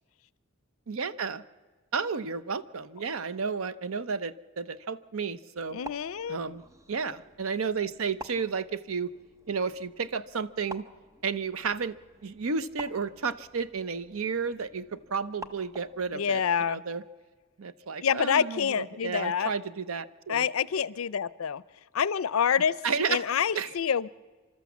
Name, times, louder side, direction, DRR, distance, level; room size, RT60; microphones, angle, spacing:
voice 1, 0.9-1.4 1.9-5.8 6.3-6.6 6.9-9.1 9.5-10.9 11.2-11.9 12.2-17.0 17.6-20.4 22.8-23.2 23.5-23.7, right 5 dB, 90° right, 15 dB, 0.7 m, -32 dB
sound 1, 5.6-16.1, right 1 dB, 15° right, 0.7 m, -49 dB
voice 2, 5.7-6.4 16.1-16.8 18.0-19.5 20.3-21.6 21.9-22.8 23.1-24.1, left 7 dB, 90° left, 19 dB, 0.5 m, -27 dB
30.0 x 12.5 x 7.2 m, 1.4 s
head